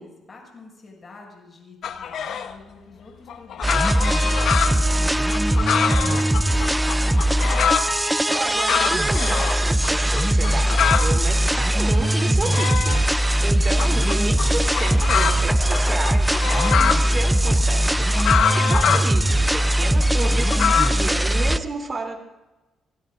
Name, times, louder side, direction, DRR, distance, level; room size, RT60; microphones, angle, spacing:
voice 1, 0.0-6.8, left 3 dB, 35° left, 0 dB, 7.2 m, -47 dB
sound 1, 1.8-2.5 3.3-7.9 8.3-9.6 9.8-9.9 10.1-11.1 11.5-13.2 13.8-17.0 17.4-19.1 19.6-20.9, left 8 dB, 70° left, 1.1 m, -25 dB
sound 2, 3.6-21.6, right 1 dB, 10° right, 0.6 m, -20 dB
voice 2, 8.3-22.2, right 3 dB, 35° right, 4 dB, 3.2 m, -31 dB
29.0 x 17.5 x 2.6 m, 1.1 s
cardioid pair, 90°, 0 cm